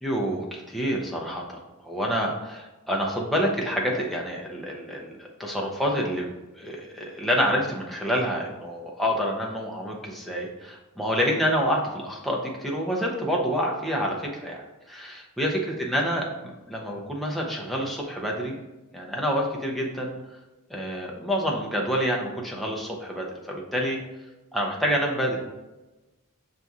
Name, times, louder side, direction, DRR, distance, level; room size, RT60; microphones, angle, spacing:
voice 1, 0.0-6.3 6.6-18.5 18.9-20.1 20.7-24.0 24.5-25.4, equal, ahead, -2 dB, 0.6 m, -28 dB
6.0 x 2.7 x 2.3 m, 1.1 s
head